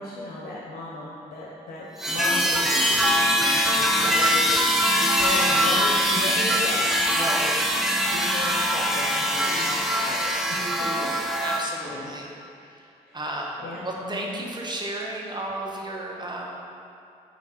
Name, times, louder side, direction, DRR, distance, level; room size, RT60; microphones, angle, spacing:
voice 1, 0.0-4.5 5.0-6.9 7.2-7.5 8.0-10.6 11.0-11.1 11.8-12.1 13.0-13.2 13.6-14.5, left 1 dB, 75° left, -5 dB, 0.9 m, -36 dB
sound 1, 2.0-11.6, equal, ahead, 0.8 m, -22 dB
voice 2, 3.9-4.4 7.1-7.5 9.4-9.8 10.5-11.1 11.4-12.3 12.6-12.8 13.1-16.5, right 1 dB, 30° right, -1 dB, 1.3 m, -34 dB
5.0 x 4.1 x 5.6 m, 2.6 s
supercardioid pair, 55°, 16 cm